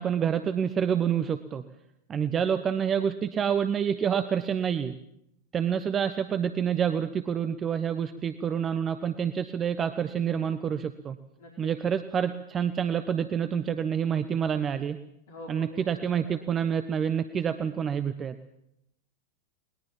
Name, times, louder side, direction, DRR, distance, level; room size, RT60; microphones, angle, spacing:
voice 1, 0.0-1.6 2.1-5.0 5.5-11.2 11.6-15.0 15.5-18.4, right 8 dB, 25° right, 11 dB, 1.1 m, -28 dB
voice 2, 11.4-11.7 15.3-16.3, left 1 dB, 55° left, 0 dB, 4.7 m, -45 dB
21.0 x 20.5 x 7.4 m, 0.77 s
figure-of-eight pair, 90°, 0 cm